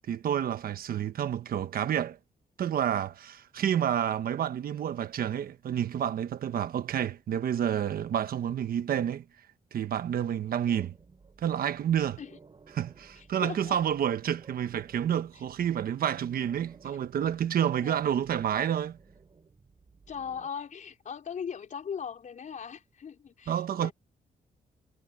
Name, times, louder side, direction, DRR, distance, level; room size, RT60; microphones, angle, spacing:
voice 1, 0.1-2.2 2.6-9.2 9.7-10.9 11.4-12.2 12.7-19.0 23.5-23.9, right 9 dB, 70° right, 1.2 m, -29 dB
sound 1, 10.6-20.5, right 4 dB, 35° right, 6.2 m, -57 dB
voice 2, 13.2-13.8 16.8-18.0 20.1-23.9, left 7 dB, 55° left, 4.7 m, -40 dB
cardioid pair, 135°, 16 cm